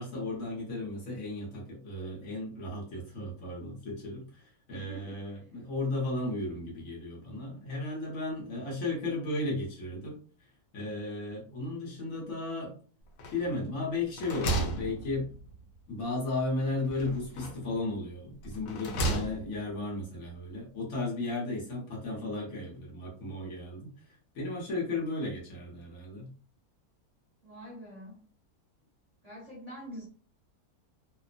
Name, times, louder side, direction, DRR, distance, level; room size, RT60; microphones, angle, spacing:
voice 1, 0.0-10.2 10.7-12.7 13.3-15.3 15.9-26.3, left 2 dB, 65° left, 1.2 m, -35 dB
voice 2, 4.7-5.4 27.4-28.2 29.2-30.1, equal, 30° right, 1.0 m, -45 dB
sound 1, 13.2-13.7 14.0-15.6 16.9-17.7 18.4-19.7, right 2 dB, 85° left, 1.2 m, -34 dB
2.9 x 2.0 x 2.4 m
omnidirectional pair, 1.6 m